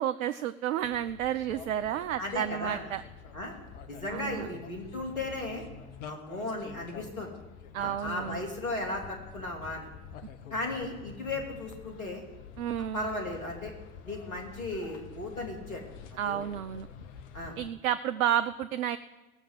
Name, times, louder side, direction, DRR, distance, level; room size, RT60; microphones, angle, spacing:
voice 1, 0.0-3.0 4.1-4.5 7.7-8.4 12.6-13.1 16.2-16.9 17.6-19.0, right 10 dB, 70° right, 12 dB, 0.6 m, -31 dB
sound 1, 0.8-17.7, left 6 dB, 60° left, 1.2 m, -48 dB
voice 2, 2.2-2.8 3.3-3.5 3.9-5.6 6.0-7.3 7.8-9.9 10.5-12.2 12.9-13.7 14.0-15.8 16.2-16.4 17.3-17.5, left 2 dB, 80° left, 2 dB, 2.9 m, -36 dB
18.0 x 7.1 x 7.8 m, 1.1 s
figure-of-eight pair, 75°, 42 cm